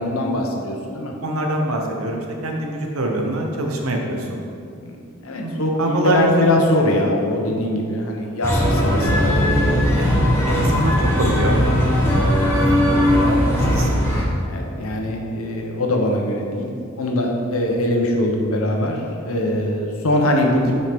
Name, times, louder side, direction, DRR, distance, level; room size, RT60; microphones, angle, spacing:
voice 1, 0.0-1.1 4.8-10.0 14.5-16.7 17.0-20.8, left 1 dB, 90° left, 1 dB, 1.0 m, -22 dB
voice 2, 1.2-4.4 5.4-6.4 10.0-10.1 10.4-11.6 13.2-14.1, right 1 dB, 90° right, 1 dB, 1.1 m, -24 dB
sound 1, 8.4-14.2, equal, 10° left, 1.2 m, -18 dB
7.5 x 5.6 x 3.6 m, 2.5 s
head